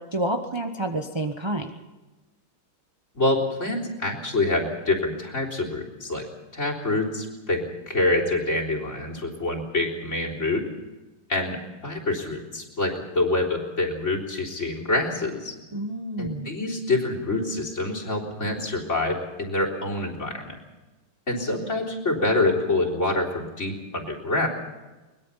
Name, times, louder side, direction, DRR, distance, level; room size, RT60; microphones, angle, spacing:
voice 1, 0.1-1.7 15.7-16.5, right 1 dB, 30° right, 4 dB, 0.5 m, -29 dB
voice 2, 3.1-6.2 6.5-10.7 11.3-15.5 16.2-20.6 21.3-24.5, left 2 dB, 30° left, 4 dB, 4.0 m, -26 dB
22.5 x 21.0 x 5.6 m, 1.1 s
omnidirectional pair, 2.4 m